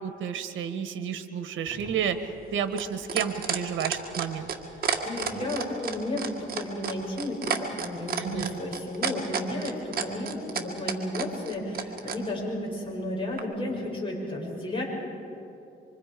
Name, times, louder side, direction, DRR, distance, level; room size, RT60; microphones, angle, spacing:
voice 1, 0.0-2.2 2.5-4.5 8.2-8.6, right 8 dB, 75° right, 9 dB, 1.6 m, -31 dB
sound 1, 1.7-12.2 13.4-13.5, right 6 dB, 50° right, 2.0 m, -31 dB
voice 2, 5.0-14.8, left 1 dB, 25° left, -3 dB, 7.5 m, -33 dB
25.5 x 25.0 x 5.3 m, 2.8 s
cardioid pair, 90°, 20 cm